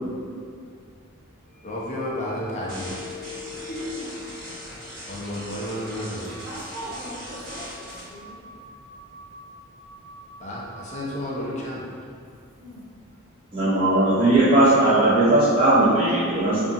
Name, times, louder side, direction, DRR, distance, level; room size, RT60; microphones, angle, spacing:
sound 1, 1.5-7.2 7.5-7.6, left 3 dB, 15° left, 1.4 m, -41 dB
voice 1, 1.6-3.0 5.1-6.3 10.4-11.8, left 1 dB, 35° left, -5 dB, 0.4 m, -31 dB
sound 2, 2.7-8.0, equal, 40° right, 1.2 m, -40 dB
sound 3, 5.8-11.2, right 2 dB, ahead, 1.1 m, -47 dB
voice 2, 6.4-8.4 12.6-12.8, equal, 60° right, -10 dB, 1.1 m, -39 dB
voice 3, 13.5-16.6, right 1 dB, 25° right, -11 dB, 0.4 m, -18 dB
2.7 x 2.5 x 2.4 m, 2.2 s
head